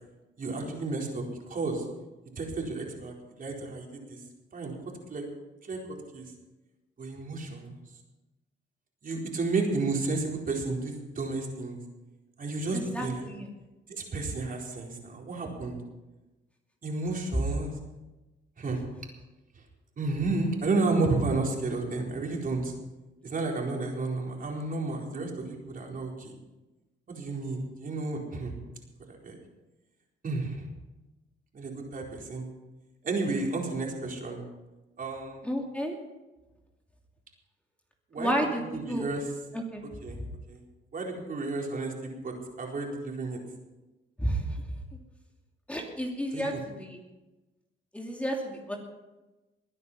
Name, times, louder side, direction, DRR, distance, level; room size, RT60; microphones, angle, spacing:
voice 1, 0.4-1.8 2.4-4.2 4.5-4.7 5.1-5.2 5.6-5.8 6.1-6.3 7.0-7.8 9.0-11.8 12.4-13.2 13.9-15.8 16.8-17.7 18.6-18.8 20.0-22.7 23.2-26.3 27.1-28.6 29.1-29.4 30.2-30.6 31.5-32.5 33.0-34.4 35.0-35.4 38.1-38.3 38.7-39.3 40.0-40.2 40.5-40.6 40.9-43.4 46.3-46.6, right 3 dB, 45° right, 0 dB, 4.3 m, -32 dB
voice 2, 12.7-13.5 35.4-36.0 38.2-39.0 39.5-39.8 40.1-40.2 44.2-44.6 45.7-47.0 47.9-48.8, right 1 dB, 5° left, 0 dB, 2.7 m, -31 dB
21.0 x 9.7 x 5.6 m, 1.1 s
cardioid pair, 90°, 20 cm